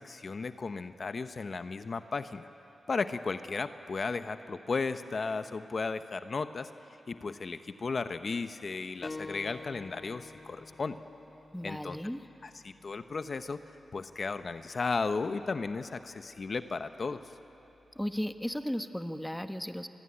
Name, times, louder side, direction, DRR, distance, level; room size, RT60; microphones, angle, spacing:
voice 1, 0.0-2.5 2.9-6.7 7.1-11.0 11.6-12.0 12.4-13.6 13.9-17.2, left 4 dB, 55° left, 10 dB, 1.0 m, -35 dB
sound 1, 9.0-14.2, left 3 dB, 40° left, 1.4 m, -48 dB
voice 2, 11.5-12.2 17.9-19.9, equal, 5° left, 8 dB, 1.2 m, -35 dB
27.5 x 21.0 x 9.9 m, 3.0 s
cardioid pair, 55°, 0 cm